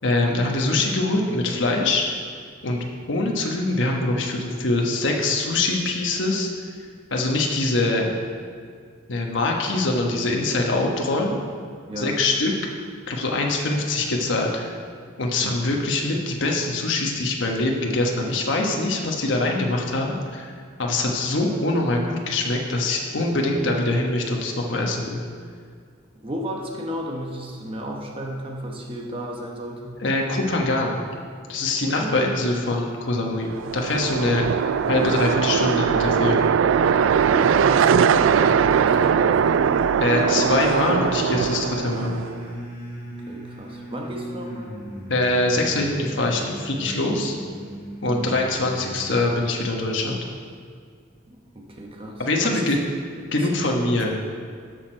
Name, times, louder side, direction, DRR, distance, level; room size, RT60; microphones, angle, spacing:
voice 1, 0.0-2.0 2.6-6.5 7.1-8.1 9.1-11.4 12.0-12.5 13.1-14.7 15.2-20.5 20.8-25.2 30.0-31.0 31.5-34.5 34.9-36.5 40.0-42.2 45.1-47.4 48.0-50.2 52.2-52.8 53.3-54.2, left 2 dB, 70° left, 0 dB, 1.2 m, -23 dB
voice 2, 15.4-15.8 26.1-30.0 31.8-32.3 37.2-39.4 43.3-44.7 48.1-48.4 51.3-52.8 53.4-53.5, equal, 25° right, 0 dB, 0.9 m, -34 dB
sound 1, 33.4-42.5, right 7 dB, 85° right, 0.3 m, -20 dB
sound 2, 37.5-49.4, right 1 dB, 45° left, 2.7 m, -37 dB
12.5 x 6.5 x 4.4 m, 2.1 s
head